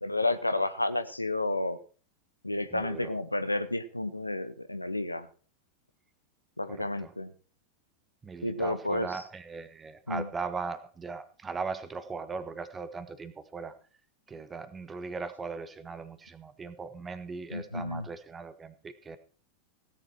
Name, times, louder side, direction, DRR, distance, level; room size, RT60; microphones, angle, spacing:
voice 1, 0.0-1.8 2.4-5.3 6.6-7.3 8.4-9.1 10.1-10.3 17.5-18.1, left 2 dB, 85° left, 13 dB, 0.9 m, -31 dB
voice 2, 2.7-3.1 6.7-7.1 8.2-13.7 14.3-19.2, right 4 dB, 15° right, 11 dB, 1.4 m, -39 dB
16.5 x 10.5 x 4.5 m, 0.40 s
figure-of-eight pair, 90°, 0 cm